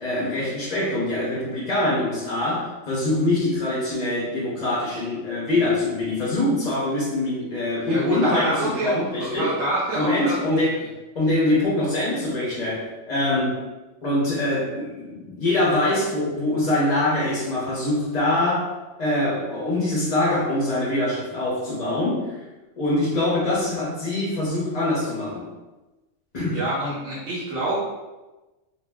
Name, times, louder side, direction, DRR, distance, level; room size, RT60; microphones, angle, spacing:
voice 1, 0.0-9.5 9.9-10.8 11.1-13.6 14.0-18.7 19.0-22.4 22.8-25.5 26.3-26.6, left 1 dB, 40° left, -7 dB, 0.7 m, -24 dB
voice 2, 7.8-8.9 9.4-10.6 26.5-27.8, right 1 dB, 70° right, -8 dB, 1.1 m, -26 dB
2.9 x 2.0 x 3.4 m, 1.1 s
omnidirectional pair, 1.3 m